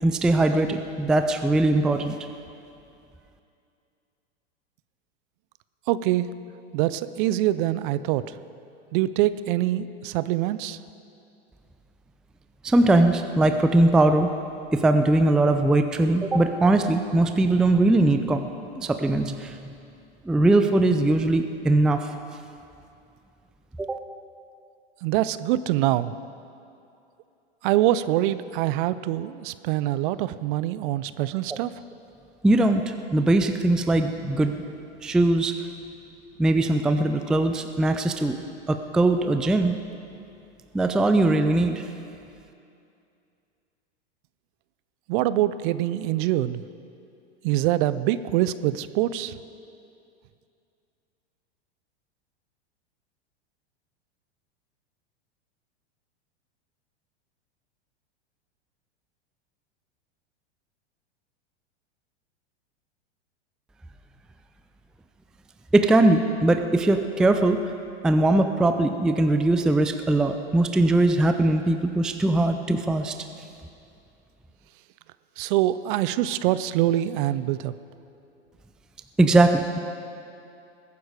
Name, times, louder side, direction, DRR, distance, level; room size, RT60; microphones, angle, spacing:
voice 1, 0.0-2.2 12.6-14.3 14.7-18.5 18.8-19.7 20.2-22.1 23.8-24.0 32.4-34.6 35.0-35.5 36.4-38.4 38.7-39.7 40.7-41.9 65.7-67.6 68.0-73.2 79.2-79.8, right 2 dB, ahead, 7 dB, 0.4 m, -21 dB
voice 2, 5.9-6.3 6.7-8.4 8.9-10.8 25.0-26.1 27.6-31.7 45.1-46.6 47.4-49.3 75.4-77.7, right 14 dB, 50° right, 15 dB, 0.6 m, -24 dB
21.0 x 9.5 x 5.0 m, 2.6 s
hypercardioid pair, 110°, 33 cm